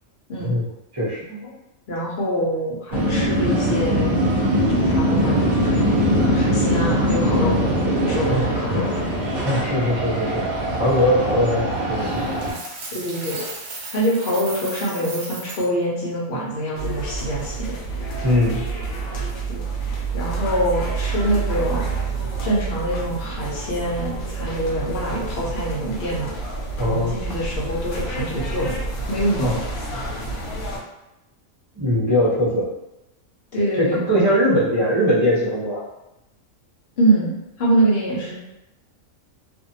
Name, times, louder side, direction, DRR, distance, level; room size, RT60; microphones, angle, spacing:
voice 1, 0.9-1.5 8.3-8.4 9.4-10.5 10.8-12.2 18.2-18.6 26.8-27.1 29.4-29.5 31.7-32.7 33.8-35.8, equal, 20° right, -8 dB, 0.8 m, -21 dB
voice 2, 1.9-4.2 4.7-5.9 6.3-7.5 8.0-9.0 12.9-13.4 13.9-17.7 19.1-19.6 19.9-21.8 22.4-26.3 26.8-28.8 29.1-29.5 33.5-34.0 37.0-38.3, right 1 dB, 55° left, -5 dB, 0.9 m, -25 dB
sound 1, 2.9-12.5, equal, 50° right, 1.0 m, -21 dB
Coin (dropping), 12.2-15.7, right 3 dB, 85° right, 1.1 m, -35 dB
sound 2, 16.8-30.8, right 3 dB, 75° left, 1.1 m, -28 dB
2.6 x 2.4 x 2.7 m, 0.94 s
omnidirectional pair, 1.4 m